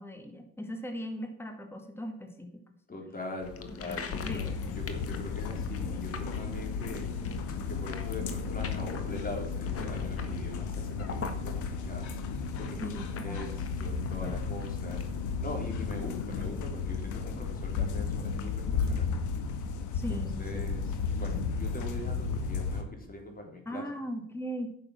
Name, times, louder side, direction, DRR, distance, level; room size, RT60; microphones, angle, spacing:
voice 1, 0.0-2.6 3.8-4.7 12.8-14.4 19.9-20.8 23.7-24.7, equal, 5° left, 5 dB, 1.9 m, -39 dB
voice 2, 2.9-7.1 7.7-12.1 12.6-12.9 13.2-13.5 13.8-15.0 15.4-19.1 20.1-23.8, left 2 dB, 25° left, 2 dB, 3.8 m, -42 dB
sound 1, 3.4-18.0, left 7 dB, 45° left, 1.8 m, -43 dB
sound 2, 4.1-22.8, left 5 dB, 65° left, 1.9 m, -34 dB
sound 3, 6.1-16.1, right 1 dB, 10° right, 5.2 m, -45 dB
11.0 x 6.8 x 7.3 m, 0.69 s
supercardioid pair, 90°, 32 cm